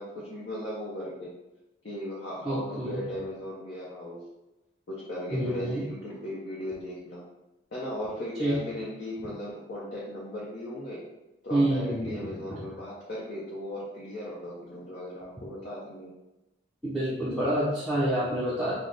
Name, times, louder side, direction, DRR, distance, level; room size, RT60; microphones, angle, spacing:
voice 1, 0.0-1.3 1.8-4.2 4.9-7.3 7.7-11.0 11.4-16.1, left 1 dB, 55° left, -7 dB, 0.6 m, -37 dB
voice 2, 2.4-3.0 5.3-5.8 8.4-8.6 11.5-12.6 16.8-18.7, right 1 dB, ahead, -10 dB, 0.5 m, -28 dB
3.2 x 2.0 x 4.0 m, 0.97 s
head